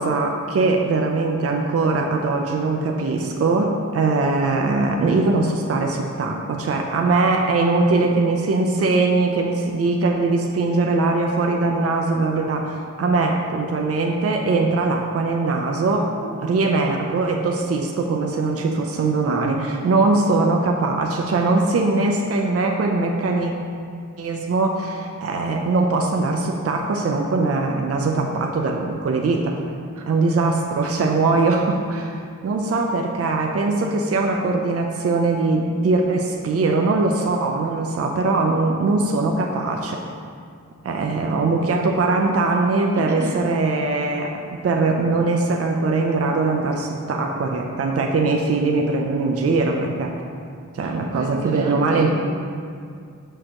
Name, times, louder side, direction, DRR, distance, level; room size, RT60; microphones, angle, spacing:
voice 1, 0.0-23.5 24.2-29.6 30.1-40.0 40.8-44.3 44.6-50.2 50.7-52.1, right 3 dB, 50° right, 1 dB, 0.5 m, -21 dB
voice 2, 42.9-43.4 50.8-52.1, right 2 dB, 80° right, 1 dB, 0.8 m, -32 dB
6.4 x 6.3 x 2.9 m, 2.3 s
wide cardioid pair, 85°, 30 cm